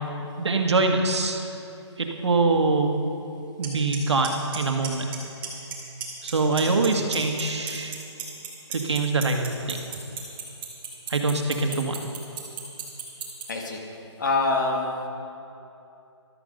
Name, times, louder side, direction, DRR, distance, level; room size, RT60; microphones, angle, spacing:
voice 1, 0.4-1.5 2.0-2.9 3.6-5.0 6.2-7.9 8.7-9.4 9.7-10.0 11.1-12.0, right 3 dB, 65° right, 3 dB, 1.8 m, -24 dB
Clock, 3.6-3.7 3.9-4.3 4.5-5.2 5.4-5.7 6.0-6.9 7.1-13.4, right 9 dB, 10° right, 1.3 m, -33 dB
voice 2, 13.5-13.8 14.2-14.9, left 3 dB, 40° left, 1 dB, 1.8 m, -25 dB
14.5 x 12.5 x 5.3 m, 2.8 s
hypercardioid pair, 170°, 15 cm